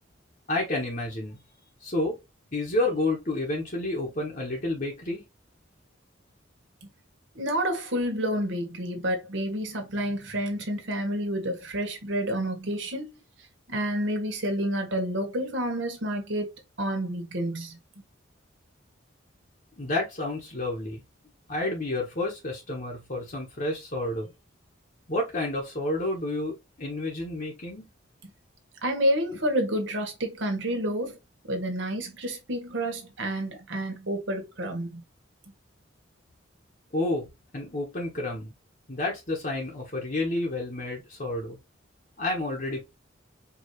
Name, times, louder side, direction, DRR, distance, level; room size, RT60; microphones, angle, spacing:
voice 1, 0.5-1.4 1.8-2.2 2.5-5.2 19.8-21.0 21.5-24.3 25.1-27.9 36.9-37.3 37.5-38.5 38.9-41.6 42.2-42.8, left 2 dB, 40° left, 1.2 m, -30 dB
voice 2, 7.3-13.1 13.7-16.5 16.8-17.8 28.2-28.3 28.8-31.2 31.5-35.0, equal, 70° right, 1.4 m, -29 dB
4.8 x 2.7 x 3.1 m
head